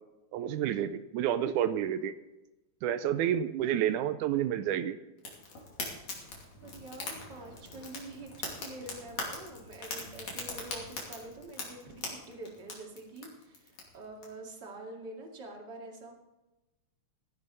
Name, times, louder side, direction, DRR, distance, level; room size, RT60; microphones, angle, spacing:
voice 1, 0.3-2.1 2.8-5.0, right 10 dB, 90° right, 10 dB, 2.1 m, -29 dB
Fire, 5.2-14.3, left 3 dB, 65° left, 3.9 m, -42 dB
voice 2, 6.6-16.1, right 2 dB, 40° right, 0 dB, 2.7 m, -46 dB
15.5 x 11.0 x 4.1 m, 1.0 s
omnidirectional pair, 3.4 m